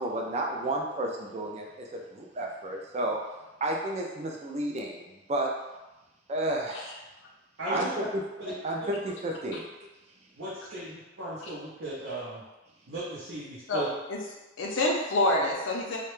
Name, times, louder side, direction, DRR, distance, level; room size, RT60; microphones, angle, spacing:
voice 1, 0.0-3.2 3.6-5.5 6.3-7.0 7.7-8.2 8.6-9.6, right 1 dB, 35° right, 0 dB, 0.3 m, -31 dB
voice 2, 7.6-8.1 8.4-8.5 8.8-9.0 10.4-12.4 12.9-13.9, right 1 dB, 70° right, -9 dB, 0.6 m, -36 dB
voice 3, 13.7-14.2 14.6-16.0, left 1 dB, 80° left, -1 dB, 0.5 m, -27 dB
2.2 x 2.0 x 3.0 m, 1.1 s
head